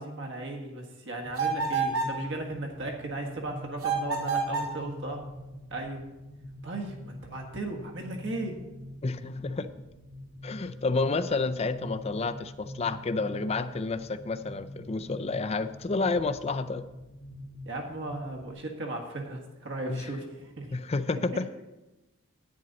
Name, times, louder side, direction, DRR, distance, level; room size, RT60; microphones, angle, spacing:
voice 1, 0.0-5.2 5.7-6.0 6.6-8.6 17.7-20.7, right 2 dB, 55° right, 2 dB, 1.6 m, -36 dB
sound 1, 1.2-18.5, left 1 dB, 70° left, 1.3 m, -44 dB
sound 2, 1.4-2.2 3.8-4.8, right 4 dB, 80° right, 2.4 m, -28 dB
voice 2, 9.0-9.7 10.4-16.8 19.9-20.1 20.7-21.5, left 3 dB, 30° left, 11 dB, 0.4 m, -30 dB
10.5 x 9.5 x 4.0 m, 1.0 s
head